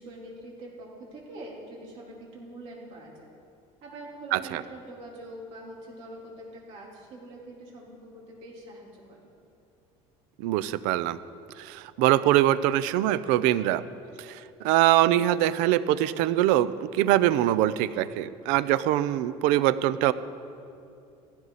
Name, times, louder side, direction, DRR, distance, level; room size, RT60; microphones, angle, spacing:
voice 1, 0.0-3.3 3.8-9.2, right 1 dB, 50° right, -3 dB, 3.7 m, -44 dB
voice 2, 4.3-4.6 10.4-11.2 11.6-13.8 14.2-20.1, right 14 dB, 85° right, 16 dB, 0.6 m, -23 dB
16.5 x 15.5 x 4.2 m, 2.6 s
cardioid pair, 180°, 13 cm